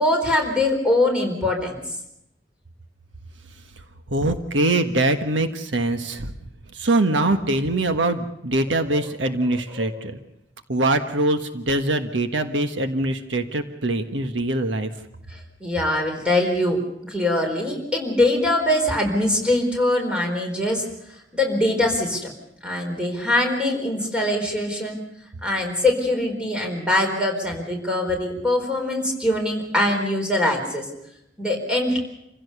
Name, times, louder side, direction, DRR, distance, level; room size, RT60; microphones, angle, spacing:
voice 1, 0.0-1.8 9.8-10.0 15.3-16.8 17.0-20.9 21.3-22.3 22.6-25.0 25.4-30.9 31.4-32.0, left 1 dB, 5° right, 1 dB, 4.3 m, -22 dB
voice 2, 4.1-6.3 6.7-10.2 10.7-14.9, right 2 dB, 85° right, 7 dB, 1.5 m, -23 dB
27.5 x 16.0 x 6.8 m, 0.80 s
head